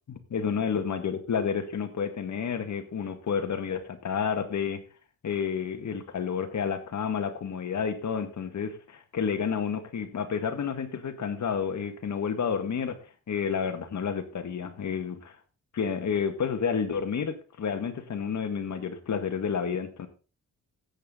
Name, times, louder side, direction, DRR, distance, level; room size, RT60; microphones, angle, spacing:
voice 1, 0.1-4.8 5.2-13.0 13.3-15.4 15.7-20.1, left 6 dB, 60° left, 7 dB, 2.0 m, -30 dB
14.0 x 8.7 x 3.9 m, 0.36 s
wide cardioid pair, 140°, 33 cm